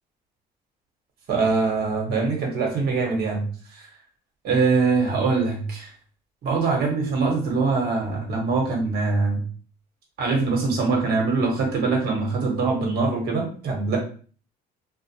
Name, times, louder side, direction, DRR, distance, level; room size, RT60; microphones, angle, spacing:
voice 1, 1.3-3.4 4.4-5.9 6.4-9.4 10.2-14.0, right 4 dB, 70° right, 0 dB, 1.1 m, -23 dB
2.5 x 2.1 x 2.8 m, 0.41 s
cardioid pair, 110°, 17 cm